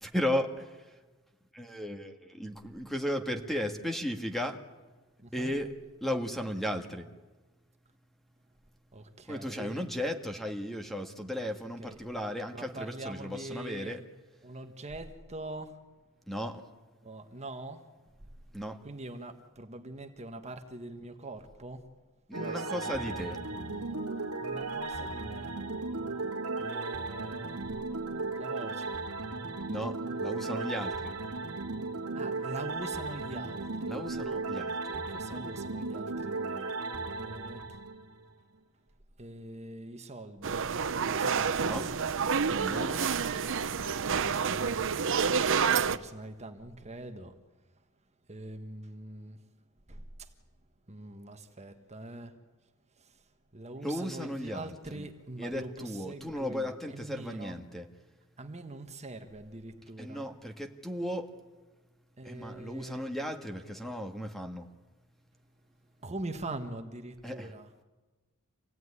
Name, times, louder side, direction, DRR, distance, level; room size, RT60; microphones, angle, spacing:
voice 1, 0.0-1.0 1.5-4.6 5.3-5.7 6.0-7.1 9.3-14.0 16.3-16.7 18.5-18.8 22.3-23.4 29.7-31.2 33.9-35.0 41.6-41.9 42.4-43.1 53.8-55.1 55.4-57.9 60.0-61.3 62.2-64.7 67.2-67.5, equal, ahead, 1.7 m, -35 dB
voice 2, 5.2-5.5 8.9-9.8 11.8-12.0 12.5-14.0 14.4-15.8 17.0-17.8 18.8-21.9 22.3-23.0 24.4-25.5 26.6-27.7 28.3-29.1 32.1-34.0 34.9-37.8 39.2-42.0 44.0-44.9 45.9-47.3 48.3-49.4 49.9-50.3 50.9-52.3 53.0-53.3 53.5-57.6 58.4-60.3 62.2-63.0 66.0-67.7, right 2 dB, 30° right, 1.5 m, -43 dB
sound 1, 22.3-38.4, right 3 dB, 85° right, 1.9 m, -36 dB
sound 2, 40.4-46.0, right 6 dB, 60° right, 0.8 m, -28 dB
27.0 x 17.5 x 9.8 m
head